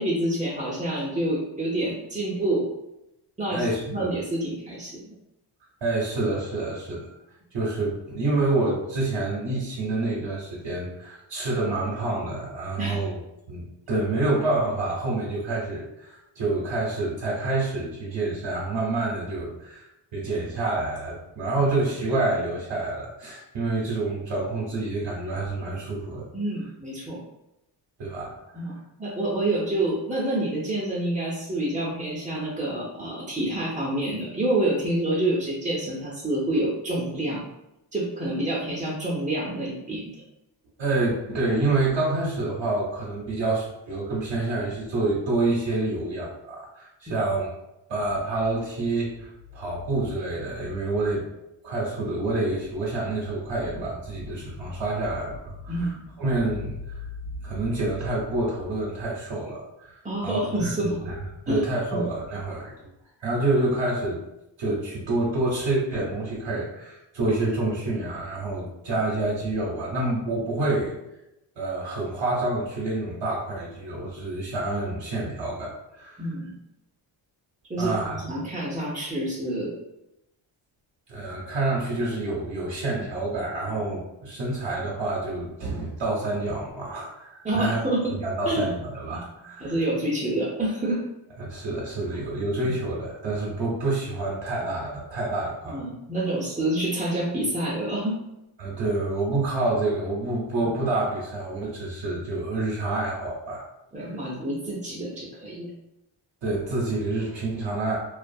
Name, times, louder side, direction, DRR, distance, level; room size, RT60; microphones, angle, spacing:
voice 1, 0.0-2.7 3.4-3.6 3.9-5.0 12.8-13.1 26.3-27.2 28.5-37.4 37.9-40.1 47.1-47.2 55.7-56.1 60.0-60.9 61.5-61.6 61.9-62.0 76.2-76.5 77.7-79.8 83.7-83.8 87.4-88.1 88.5-88.7 89.6-91.0 92.1-92.2 95.6-98.2 100.6-100.8 103.9-105.7, right 1 dB, 15° right, -6 dB, 0.5 m, -27 dB
voice 2, 3.5-4.1 5.8-7.1 7.5-13.2 13.5-26.3 28.0-28.6 40.8-47.5 47.9-51.2 51.6-57.1 57.4-61.2 61.5-62.7 63.2-64.2 64.6-71.0 71.6-76.3 77.8-78.2 81.1-87.8 88.2-89.7 91.4-95.8 98.6-103.6 104.0-104.1 106.4-108.0, right 2 dB, 60° right, -4 dB, 0.8 m, -28 dB
2.4 x 2.2 x 2.6 m, 0.88 s
cardioid pair, 80°, 50 cm